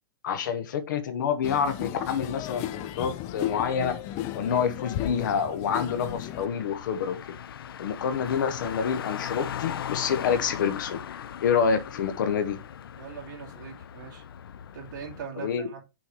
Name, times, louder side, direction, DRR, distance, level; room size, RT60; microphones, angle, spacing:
voice 1, 0.2-4.0 4.3-7.4 7.8-12.6 15.4-15.7, left 7 dB, 60° left, 1.0 m, -28 dB
sound 1, 1.4-6.5, left 12 dB, 25° left, 0.4 m, -34 dB
Car, 5.7-15.3, left 9 dB, 80° left, 0.6 m, -39 dB
voice 2, 13.0-14.2 14.7-15.8, right 7 dB, 55° right, 2.4 m, -41 dB
6.4 x 3.8 x 4.4 m
hypercardioid pair, 165°, 12 cm